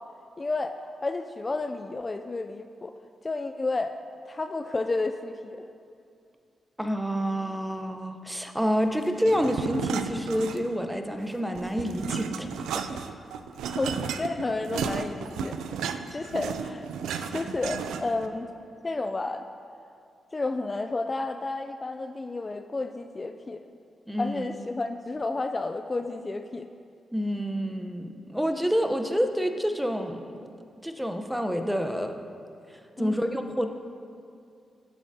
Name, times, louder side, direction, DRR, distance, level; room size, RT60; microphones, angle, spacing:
voice 1, 0.4-2.9 3.2-4.0 4.3-5.7 13.7-15.6 15.8-16.9 17.3-18.5 18.8-19.4 20.3-23.6 24.2-26.7 33.0-33.2, left 3 dB, 35° left, 7 dB, 0.4 m, -31 dB
voice 2, 6.8-12.5 24.1-24.4 27.1-30.4 30.8-32.1 33.0-33.7, equal, 5° right, 6 dB, 0.8 m, -28 dB
sound 1, 9.2-10.9 11.2-18.3, right 6 dB, 85° right, 0.3 m, -33 dB
12.0 x 7.3 x 2.8 m, 2.4 s
supercardioid pair, 50°, 0 cm